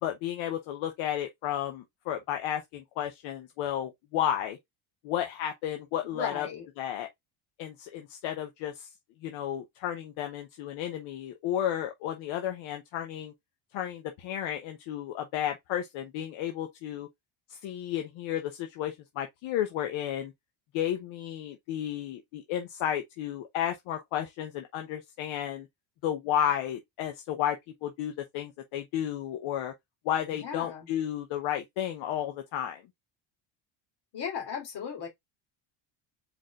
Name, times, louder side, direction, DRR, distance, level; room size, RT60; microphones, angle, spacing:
voice 1, 0.0-4.6 5.0-6.5 6.8-7.1 7.6-8.9 9.2-13.3 13.7-17.1 17.5-20.3 20.7-25.7 26.0-29.7 30.0-32.8, left 10 dB, 75° left, 1.0 m, -32 dB
voice 2, 6.0-6.6 30.3-30.9 34.1-35.1, left 7 dB, 55° left, 3.1 m, -36 dB
4.7 x 4.3 x 2.4 m
cardioid pair, 130°, 48 cm